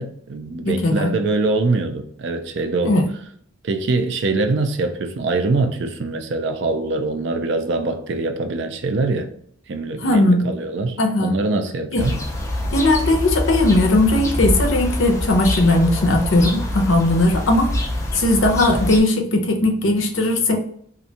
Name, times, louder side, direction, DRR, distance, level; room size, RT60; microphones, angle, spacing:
voice 1, 0.0-3.0 3.6-9.3 9.7-12.2, right 3 dB, 60° right, 0.4 m, -23 dB
voice 2, 0.6-1.1 2.9-3.1 10.0-10.4 11.0-11.3 11.9-12.0 12.7-17.7 18.1-20.6, left 2 dB, 75° left, 0.6 m, -18 dB
sound 1, 12.0-19.0, left 1 dB, 15° left, 0.3 m, -25 dB
2.5 x 2.1 x 2.7 m
head